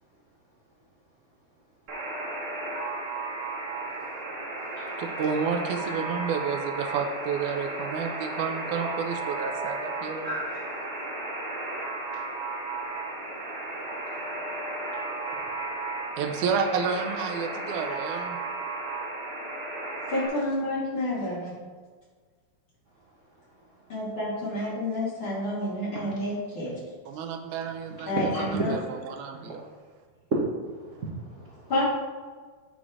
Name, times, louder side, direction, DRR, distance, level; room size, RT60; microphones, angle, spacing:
Alarm, 1.9-20.3, right 2 dB, 45° right, 2.6 m, -34 dB
voice 1, 5.0-10.4 16.2-18.4 27.1-28.2 28.7-29.7, right 6 dB, 90° right, 5 dB, 2.2 m, -30 dB
voice 2, 10.2-10.6 25.9-26.1 28.0-28.9 30.5-31.7, right 2 dB, 70° right, -6 dB, 0.7 m, -33 dB
voice 3, 20.1-21.5 23.9-26.7 28.1-28.7 31.7-31.8, left 1 dB, 45° left, -7 dB, 2.9 m, -29 dB
9.2 x 4.1 x 4.8 m, 1.5 s
omnidirectional pair, 3.4 m